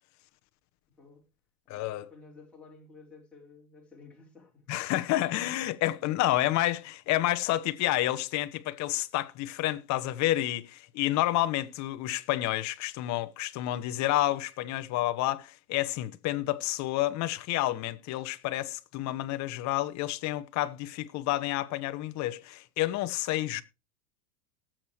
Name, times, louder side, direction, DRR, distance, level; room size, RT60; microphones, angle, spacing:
voice 1, 0.9-1.3 1.7-4.7, left 4 dB, ahead, 4.5 m, -53 dB
voice 2, 1.7-2.1 4.7-23.6, left 15 dB, 35° left, 1.2 m, -29 dB
18.5 x 7.7 x 3.2 m
supercardioid pair, 130°, 48 cm